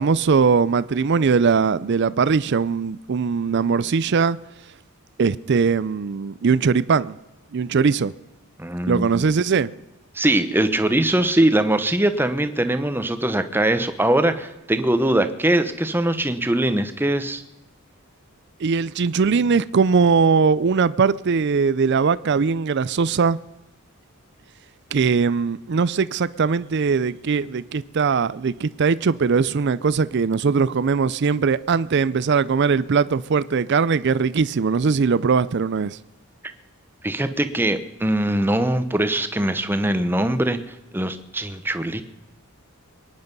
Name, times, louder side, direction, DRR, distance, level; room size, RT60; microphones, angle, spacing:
voice 1, 0.0-4.4 5.2-7.2 7.5-8.1 8.9-9.7 18.6-23.4 24.9-36.0, right 5 dB, 50° right, 0.4 m, -20 dB
voice 2, 8.6-9.2 10.1-17.4 37.0-40.6 40.9-42.0, right 1 dB, 10° right, 0.9 m, -21 dB
23.0 x 10.5 x 5.4 m
head